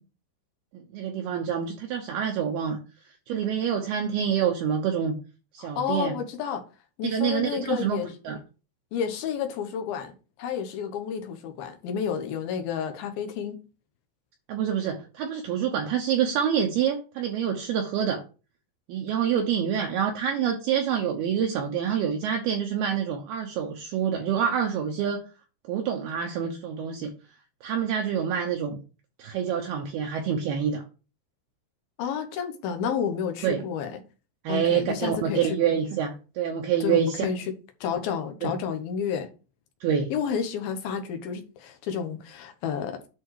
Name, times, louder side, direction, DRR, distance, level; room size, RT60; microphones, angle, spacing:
voice 1, 0.7-2.8 3.3-5.2 5.5-6.2 7.0-8.0 8.2-8.4 14.5-18.2 18.9-25.2 25.6-27.1 27.6-28.8 29.2-30.8 33.4-33.6 34.4-37.3 38.4-38.5 39.8-40.1, right 8 dB, 70° right, 2.6 m, -27 dB
voice 2, 5.6-6.6 7.0-8.1 8.9-10.1 10.4-13.6 32.0-34.0 34.5-35.6 36.8-37.4 37.8-39.3 40.1-43.1, left 7 dB, 70° left, 2.6 m, -30 dB
10.5 x 4.3 x 4.7 m
omnidirectional pair, 5.1 m